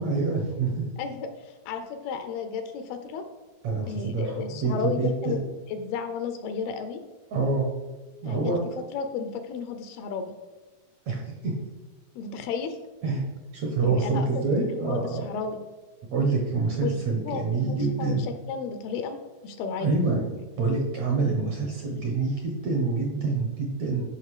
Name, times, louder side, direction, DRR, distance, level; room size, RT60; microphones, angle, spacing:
voice 1, 0.0-0.9 3.6-5.3 7.3-7.7 8.2-8.6 11.1-11.5 13.0-13.2 13.5-15.2 16.1-18.2 19.8-20.2 20.6-24.0, right 4 dB, 60° right, 0 dB, 1.9 m, -26 dB
voice 2, 1.0-3.2 3.9-5.4 5.7-7.0 8.3-8.5 8.9-10.3 12.2-12.8 13.8-14.4 14.7-15.6 16.8-17.0 17.2-19.2 19.4-19.9, left 6 dB, 80° left, 7 dB, 2.5 m, -33 dB
13.0 x 5.4 x 4.9 m, 1.2 s
omnidirectional pair, 4.7 m